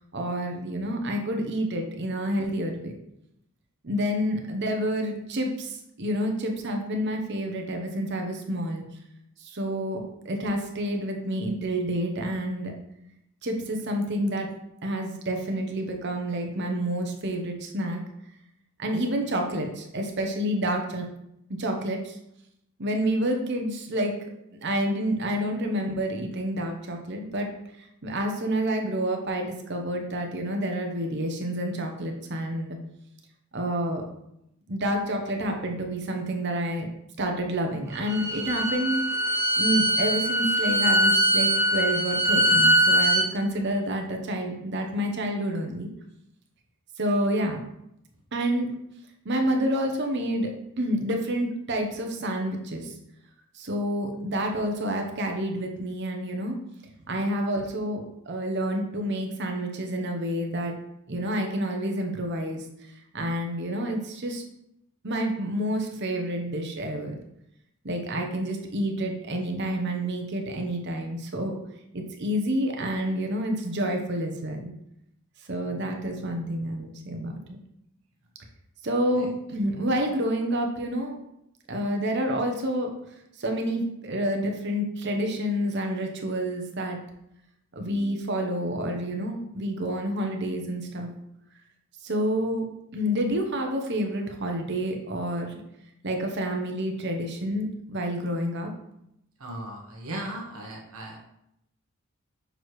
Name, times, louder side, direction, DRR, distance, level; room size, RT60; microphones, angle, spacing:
voice 1, 0.1-2.9 3.8-8.8 9.4-12.7 13.4-14.5 14.8-18.0 18.8-21.1 21.5-22.2 22.8-24.2 24.5-27.5 28.0-32.8 33.5-34.0 34.7-36.9 37.2-39.0 39.6-45.9 47.0-47.6 48.3-48.7 49.2-50.5 50.8-52.9 53.5-56.6 57.1-60.8 61.1-62.6 63.1-64.4 65.0-67.1 67.8-71.5 71.9-74.7 75.5-77.6 78.8-81.2 81.7-82.9 83.4-87.0 87.8-91.1 92.0-92.6 92.9-95.5 96.0-98.7, equal, 50° right, 3 dB, 0.9 m, -28 dB
Bowed string instrument, 37.9-43.3, right 1 dB, 10° right, 0.7 m, -22 dB
voice 2, 75.6-76.0 79.1-79.3 99.4-101.2, right 1 dB, 75° right, 0 dB, 1.1 m, -37 dB
6.5 x 4.5 x 3.2 m, 0.80 s
head